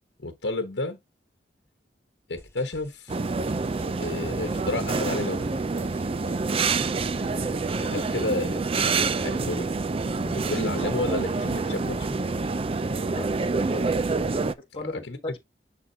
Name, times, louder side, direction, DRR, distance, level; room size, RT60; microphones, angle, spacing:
voice 1, 0.2-1.0 2.3-3.2 4.0-5.5 7.8-9.7 10.2-12.1 14.8-15.2, left 2 dB, 75° left, 1.2 m, -31 dB
sound 1, 2.4-8.2, equal, 15° left, 1.5 m, -52 dB
sound 2, 3.1-14.5, right 4 dB, 30° right, 0.4 m, -27 dB
voice 2, 14.7-15.4, left 2 dB, 30° left, 1.4 m, -39 dB
9.9 x 3.6 x 2.8 m
head